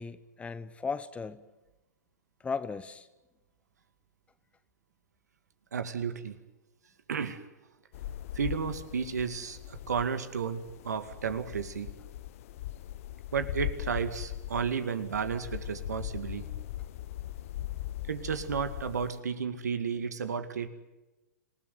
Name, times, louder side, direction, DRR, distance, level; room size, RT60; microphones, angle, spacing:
voice 1, 0.0-1.4 2.4-3.1, left 5 dB, 15° left, 15 dB, 1.0 m, -36 dB
voice 2, 5.7-6.4 7.1-7.4 8.3-11.9 13.3-16.5 18.1-20.7, right 6 dB, 75° right, 10 dB, 2.2 m, -33 dB
sound 1, 7.9-19.2, left 13 dB, 55° left, 0.8 m, -40 dB
27.0 x 18.5 x 9.4 m, 1.1 s
hypercardioid pair, 110°, 9 cm